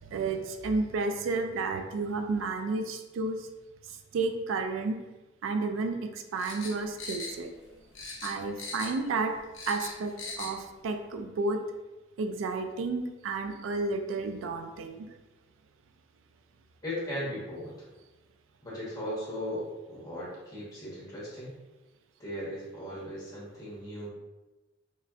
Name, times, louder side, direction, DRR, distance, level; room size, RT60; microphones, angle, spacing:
voice 1, 0.0-3.5 3.9-5.0 5.4-7.5 8.2-9.3 9.7-11.6 12.2-15.1, right 3 dB, 90° right, 6 dB, 0.3 m, -31 dB
sound 1, 6.4-7.7 7.9-9.1 9.4-10.6 10.9-11.0, left 3 dB, 85° left, 0.6 m, -40 dB
voice 2, 16.8-17.7 18.6-21.5 22.2-24.1, equal, 20° left, -7 dB, 1.0 m, -37 dB
3.0 x 2.4 x 2.4 m, 1.1 s
head